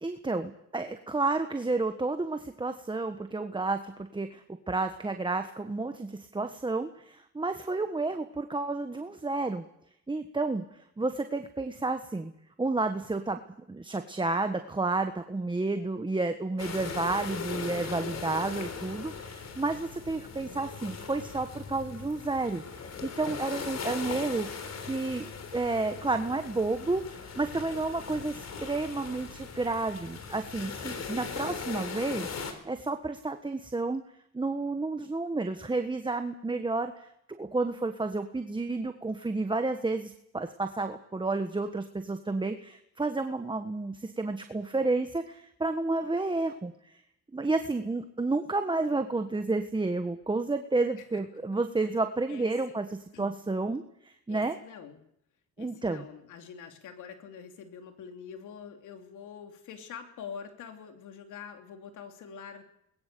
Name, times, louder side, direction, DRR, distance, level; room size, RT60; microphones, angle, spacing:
voice 1, 0.0-9.6 10.1-12.3 12.6-13.4 13.7-24.5 24.8-34.0 34.3-37.1 37.4-47.0 47.3-52.8 53.2-54.6 55.6-56.0, right 3 dB, 15° right, 7 dB, 1.4 m, -31 dB
sound 1, 16.6-32.5, left 5 dB, 60° left, 3.9 m, -39 dB
voice 2, 52.3-52.8 53.1-53.4 54.3-55.0 55.6-62.7, left 7 dB, 80° left, 5 dB, 3.0 m, -45 dB
21.5 x 21.0 x 6.9 m, 0.75 s
cardioid pair, 90°, 30 cm